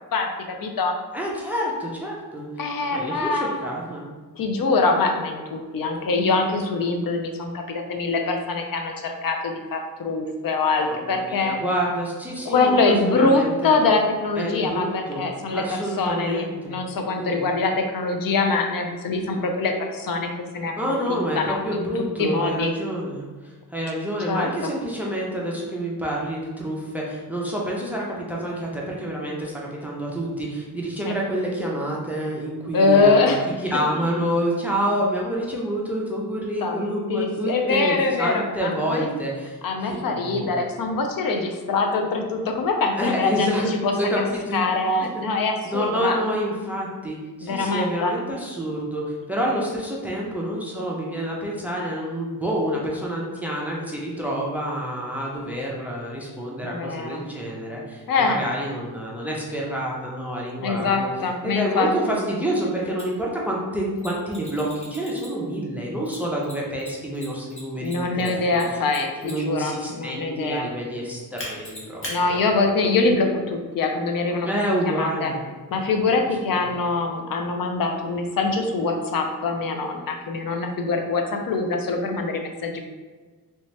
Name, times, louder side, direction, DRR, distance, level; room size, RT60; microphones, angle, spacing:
voice 1, 0.6-1.0 2.6-3.7 4.4-11.6 12.5-20.3 20.5-20.7 21.1-21.9 22.2-22.7 24.3-24.7 31.0-31.2 32.7-33.5 36.6-39.1 39.6-44.2 44.5-46.2 47.4-48.1 56.6-57.2 58.1-58.4 60.6-61.9 67.8-70.7 72.1-74.5 74.9-75.3 75.7-82.8, left 3 dB, 70° left, 4 dB, 0.5 m, -24 dB
voice 2, 1.1-2.5 2.9-4.1 10.9-13.8 14.4-15.3 15.5-16.8 17.1-17.4 20.8-33.4 33.7-40.5 43.0-43.7 44.0-44.7 45.1-45.2 45.6-61.1 61.4-68.8 69.2-72.4 74.4-75.4 75.7-75.8, equal, 5° right, -3 dB, 0.4 m, -28 dB
Mechanisms, 63.0-63.1 64.0-65.5 66.1-69.6 71.4-72.2, left 1 dB, 35° left, 1.0 m, -38 dB
3.3 x 2.7 x 3.1 m, 1.4 s
wide cardioid pair, 175°, 36 cm